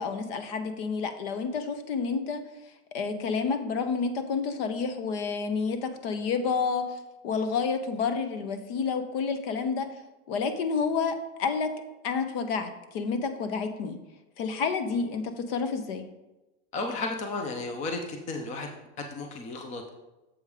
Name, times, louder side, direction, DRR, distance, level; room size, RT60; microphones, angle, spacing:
voice 1, 0.0-2.4 2.9-7.0 7.2-9.9 10.3-11.7 12.0-14.0 14.4-16.1, left 5 dB, 50° left, 8 dB, 0.9 m, -29 dB
voice 2, 16.7-18.7 19.0-19.9, left 3 dB, 20° left, 3 dB, 0.6 m, -33 dB
7.2 x 5.1 x 4.9 m, 1.0 s
supercardioid pair, 160°, 37 cm